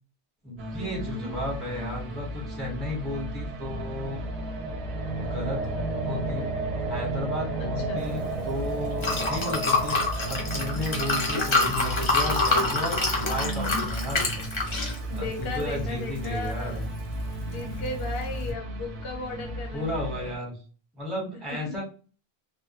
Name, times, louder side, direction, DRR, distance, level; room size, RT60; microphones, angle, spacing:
voice 1, 0.4-4.2 5.1-5.6 6.0-6.5 6.9-10.0 10.3-14.3 15.1-16.8 19.7-20.6 21.0-21.8, left 1 dB, ahead, -3 dB, 0.8 m, -33 dB
sound 1, 0.6-20.4, equal, 85° right, 0.8 m, -37 dB
voice 2, 0.9-1.3 7.6-8.1 13.2-13.9 14.7-16.9 17.4-20.3 21.3-21.7, left 2 dB, 75° left, 3 dB, 0.9 m, -36 dB
sound 2, 2.9-12.9, right 3 dB, 50° right, 0.5 m, -34 dB
Liquid, 8.0-18.5, left 2 dB, 35° left, 0.5 m, -28 dB
2.1 x 2.0 x 2.8 m, 0.37 s
omnidirectional pair, 1.0 m